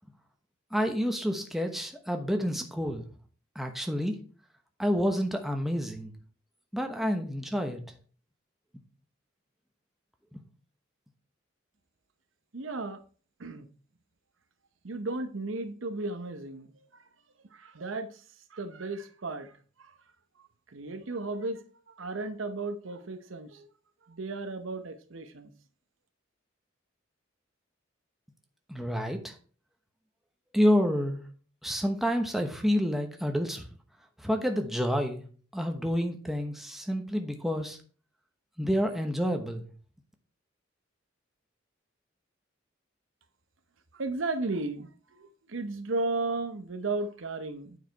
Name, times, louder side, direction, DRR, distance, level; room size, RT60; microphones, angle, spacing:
voice 1, 0.7-3.1 3.5-4.1 4.8-6.1 6.7-7.8 10.3-10.4 28.7-29.3 30.5-31.2 31.6-33.7 34.2-35.2 35.5-37.8 38.6-39.7, equal, ahead, 1.0 m, -28 dB
voice 2, 12.5-13.0 13.4-13.7 14.8-17.0 17.5-18.2 18.5-19.5 19.8-19.9 20.4-23.7 24.1-25.5 43.9-47.8, right 3 dB, 80° right, 0.9 m, -35 dB
8.9 x 5.0 x 4.5 m
head